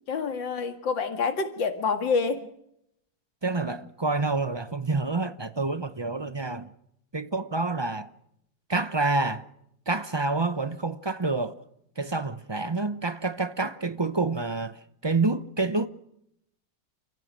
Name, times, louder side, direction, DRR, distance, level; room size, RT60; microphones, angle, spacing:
voice 1, 0.1-2.5, left 5 dB, 85° left, 2.7 m, -27 dB
voice 2, 3.4-6.7 7.1-8.1 8.7-9.4 9.9-11.5 12.0-14.8 15.0-15.9, right 3 dB, 25° right, 0.5 m, -28 dB
29.0 x 15.5 x 6.3 m
omnidirectional pair, 2.0 m